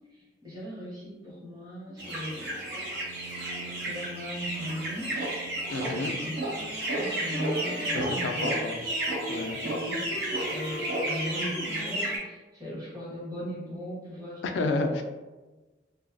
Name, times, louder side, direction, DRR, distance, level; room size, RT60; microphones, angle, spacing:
voice 1, 0.1-2.6 3.8-5.2 6.2-8.6 9.6-15.0, equal, 20° right, -7 dB, 0.9 m, -38 dB
sound 1, 2.0-12.2, right 1 dB, 70° right, 0.7 m, -32 dB
voice 2, 5.7-6.2 7.9-8.8 9.3-9.6 14.4-15.0, left 3 dB, 90° left, 6 dB, 0.3 m, -30 dB
sound 2, 5.7-6.1 6.4-8.5 8.8-12.2, left 1 dB, 5° right, 0.5 m, -40 dB
2.6 x 2.2 x 2.4 m, 1.2 s
head